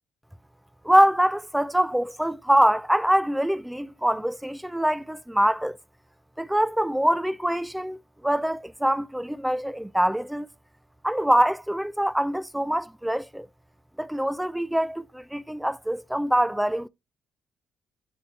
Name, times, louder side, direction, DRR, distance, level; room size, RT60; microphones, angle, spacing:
voice 1, 0.8-5.8 6.4-10.5 11.0-13.5 14.0-16.9, equal, 5° right, 0.4 m, -24 dB
11.5 x 4.3 x 3.2 m
cardioid pair, 90°, 0 cm